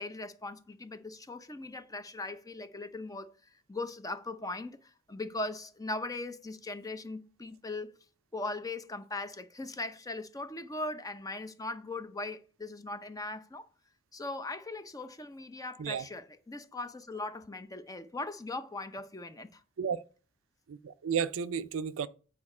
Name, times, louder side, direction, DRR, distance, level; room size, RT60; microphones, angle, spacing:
voice 1, 0.0-3.3 3.7-7.9 8.3-13.7 14.1-19.6, left 2 dB, 15° left, 0.6 m, -39 dB
voice 2, 20.7-22.1, right 7 dB, 70° right, 0.4 m, -32 dB
8.4 x 4.9 x 4.3 m
head